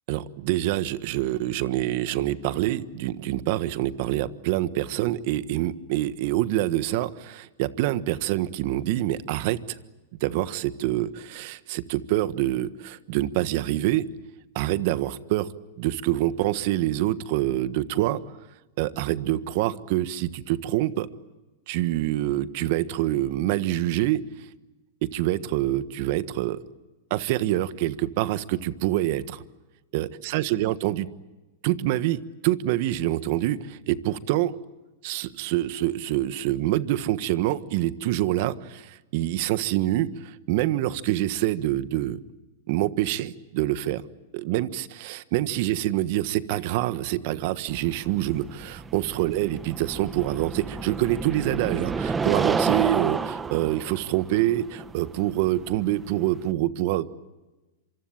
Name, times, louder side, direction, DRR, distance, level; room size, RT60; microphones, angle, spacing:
voice 1, 0.1-9.8 10.2-14.0 14.5-15.5 15.8-18.2 18.8-21.1 21.7-24.2 25.0-26.6 27.1-29.4 29.9-31.1 31.6-34.5 35.0-42.2 42.7-44.0 44.3-57.1, right 14 dB, 55° right, 14 dB, 1.4 m, -26 dB
sound 1, 47.7-56.5, right 4 dB, 15° right, 1.2 m, -30 dB
26.5 x 25.0 x 8.9 m, 1.1 s
hypercardioid pair, 125°, 0 cm